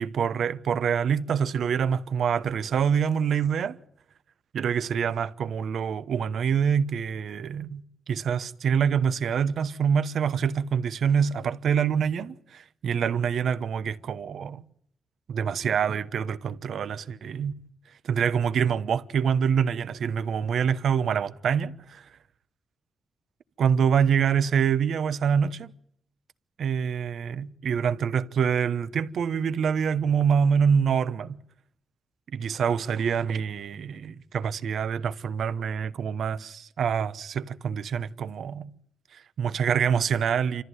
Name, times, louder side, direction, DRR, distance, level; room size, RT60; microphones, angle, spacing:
voice 1, 0.0-3.8 4.5-14.6 15.3-17.5 18.0-22.1 23.6-25.7 26.6-31.4 32.3-38.7 39.1-40.6, right 7 dB, 70° right, 1.0 m, -26 dB
28.0 x 14.0 x 9.4 m
wide cardioid pair, 130°, 0 cm